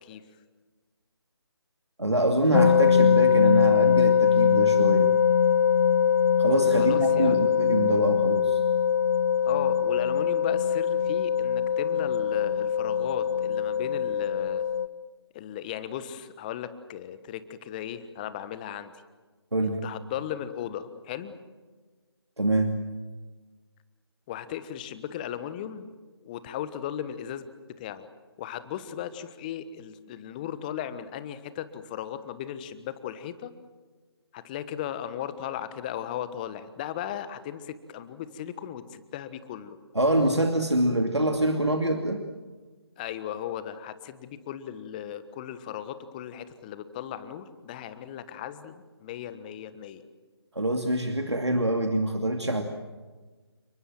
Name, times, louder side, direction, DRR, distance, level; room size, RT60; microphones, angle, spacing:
voice 1, 2.0-5.1 6.4-8.6 19.5-19.8 22.4-22.7 39.9-42.2 50.5-52.6, right 1 dB, 85° right, 4 dB, 2.6 m, -25 dB
sound 1, 2.5-14.9, left 7 dB, 40° left, 1.0 m, -22 dB
voice 2, 6.7-7.4 9.4-14.6 15.3-18.9 19.6-21.3 24.3-25.9 26.2-27.5 27.8-28.1 28.4-33.5 34.3-39.8 43.0-50.0, left 10 dB, 20° left, 13 dB, 1.3 m, -36 dB
29.5 x 20.0 x 7.5 m, 1.3 s
figure-of-eight pair, 150°, 14 cm